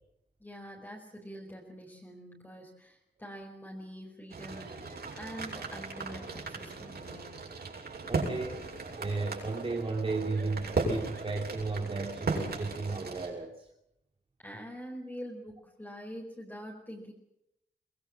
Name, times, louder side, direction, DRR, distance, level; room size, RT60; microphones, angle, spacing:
voice 1, 0.4-4.8 5.1-7.4 14.4-17.1, equal, 10° left, -1 dB, 4.7 m, -45 dB
sound 1, 4.3-13.3, right 3 dB, 60° right, 7.3 m, -37 dB
voice 2, 8.1-8.7 9.0-13.7, right 3 dB, 30° right, 1 dB, 2.7 m, -34 dB
23.5 x 21.5 x 7.6 m, 0.82 s
wide cardioid pair, 135°, 18 cm